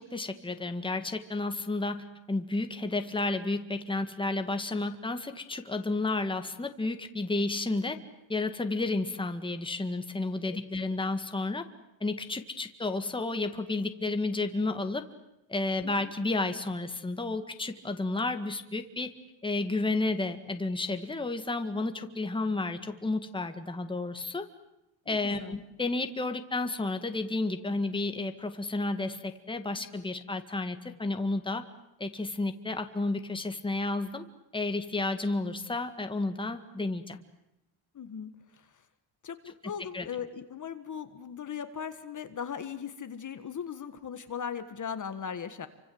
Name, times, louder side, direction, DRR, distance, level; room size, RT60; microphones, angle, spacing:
voice 1, 0.0-8.0 8.3-11.6 12.0-15.0 15.5-19.1 19.4-24.5 25.1-31.6 32.0-34.2 34.5-37.2 39.9-40.1, left 2 dB, 10° left, 7 dB, 1.8 m, -31 dB
voice 2, 25.1-25.6 37.9-38.8 39.2-45.7, left 7 dB, 40° left, 9 dB, 1.6 m, -38 dB
29.5 x 25.0 x 7.9 m, 0.91 s
cardioid pair, 145°, 47 cm